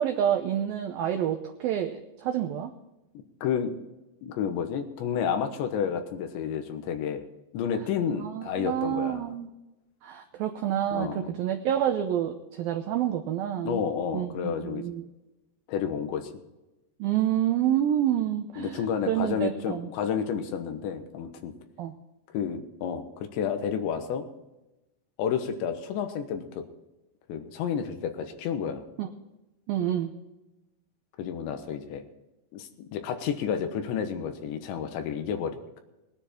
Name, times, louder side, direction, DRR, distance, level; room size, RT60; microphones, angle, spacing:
voice 1, 0.0-2.7 8.2-9.5 10.0-13.8 14.1-15.0 17.0-18.8 19.1-19.9 21.8-21.9 29.0-29.1 29.7-30.1, right 10 dB, 80° right, 5 dB, 2.1 m, -28 dB
voice 2, 3.4-3.9 4.2-7.2 7.5-9.3 10.9-11.3 13.6-14.9 15.7-16.3 18.6-21.5 22.3-24.3 25.2-26.6 27.3-28.8 31.2-32.0 32.5-35.8, left 7 dB, 85° left, 7 dB, 3.4 m, -30 dB
20.0 x 9.9 x 4.3 m, 1.0 s
omnidirectional pair, 5.1 m